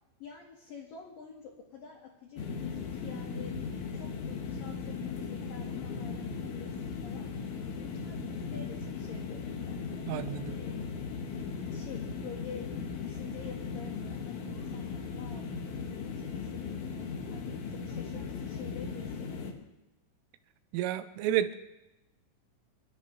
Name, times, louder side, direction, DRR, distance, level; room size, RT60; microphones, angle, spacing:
voice 1, 0.2-7.3 7.7-9.9 10.1-11.0 11.7-19.7, left 6 dB, 55° left, -3 dB, 3.0 m, -48 dB
sound 1, 2.4-19.5, left 5 dB, 75° left, 1.7 m, -38 dB
voice 2, 10.1-10.6 20.7-21.6, right 12 dB, 90° right, 11 dB, 3.4 m, -30 dB
26.0 x 12.0 x 4.0 m, 0.94 s
omnidirectional pair, 5.8 m